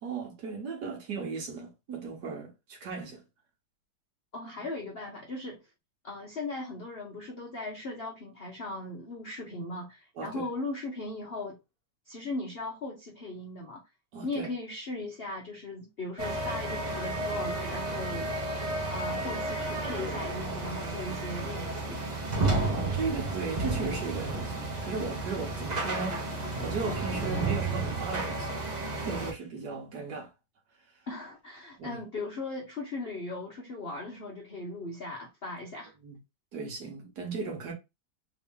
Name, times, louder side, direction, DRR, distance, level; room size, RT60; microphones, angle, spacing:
voice 1, 0.0-3.2 10.2-10.5 14.1-14.5 22.7-26.2 26.6-28.6 29.0-30.3 31.8-32.0 36.0-36.2 36.5-37.7, right 4 dB, 60° right, 1.6 m, -36 dB
voice 2, 4.3-5.6 6.0-11.6 12.1-13.8 14.2-18.3 18.9-22.1 31.1-35.9, left 2 dB, 55° left, 0.6 m, -38 dB
sound 1, 16.2-29.3, right 2 dB, 30° right, 0.8 m, -32 dB
3.5 x 2.7 x 3.6 m
omnidirectional pair, 2.1 m